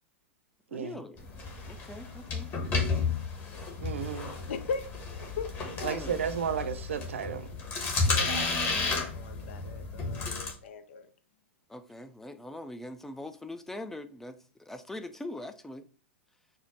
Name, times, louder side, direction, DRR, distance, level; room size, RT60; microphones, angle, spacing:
voice 1, 0.7-1.3 1.7-2.5 5.8-6.3 11.7-15.9, left 1 dB, 5° left, 0.4 m, -42 dB
sound 1, 1.2-10.5, left 4 dB, 30° left, 1.1 m, -32 dB
voice 2, 3.8-4.3 5.8-7.5, right 7 dB, 80° right, 0.5 m, -33 dB
voice 3, 4.5-4.8 5.2-6.0 8.1-11.1, left 5 dB, 70° left, 0.5 m, -39 dB
4.5 x 2.0 x 4.1 m
hypercardioid pair, 110°, 7 cm